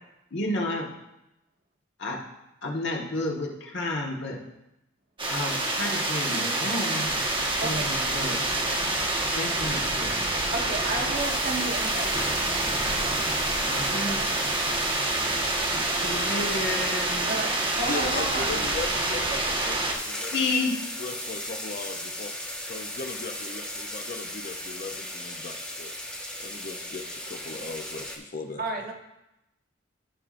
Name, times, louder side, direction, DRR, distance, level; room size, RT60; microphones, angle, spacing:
voice 1, 0.3-0.9 2.0-2.2 2.6-4.4 5.3-7.2 7.6-8.4 9.3-10.1 13.7-14.3 15.7-17.3 20.3-20.9, left 2 dB, 65° left, -1 dB, 1.4 m, -31 dB
sound 1, 5.2-19.9, right 2 dB, 25° right, 1.3 m, -27 dB
voice 2, 7.6-7.9 10.5-12.2 17.2-18.6 28.6-28.9, right 3 dB, 50° right, 1 dB, 1.2 m, -32 dB
sound 2, 11.1-18.6 19.5-19.6 19.8-28.2, left 1 dB, 5° left, 1.0 m, -39 dB
voice 3, 17.9-20.3 21.0-22.3 22.7-25.9 26.4-28.9, left 3 dB, 45° left, 5 dB, 0.6 m, -37 dB
15.0 x 5.6 x 2.5 m, 0.91 s
head